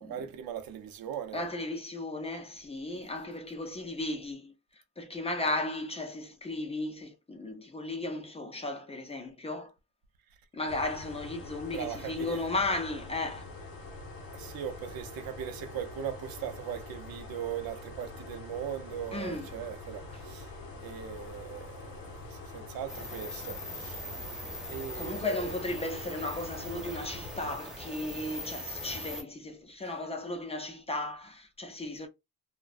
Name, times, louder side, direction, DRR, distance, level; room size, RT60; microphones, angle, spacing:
voice 1, 0.0-1.4 11.7-12.5 14.3-20.5 20.8-24.0 24.7-25.6 29.8-29.9, right 9 dB, 85° right, 0.6 m, -39 dB
voice 2, 1.3-4.5 5.0-9.7 10.5-13.5 19.1-19.5 25.0-32.1, left 2 dB, 20° left, 0.4 m, -35 dB
sound 1, 10.7-27.6, left 2 dB, 80° left, 0.7 m, -45 dB
sound 2, 22.9-29.2, equal, ahead, 0.9 m, -41 dB
2.5 x 2.1 x 2.4 m
wide cardioid pair, 145°, 34 cm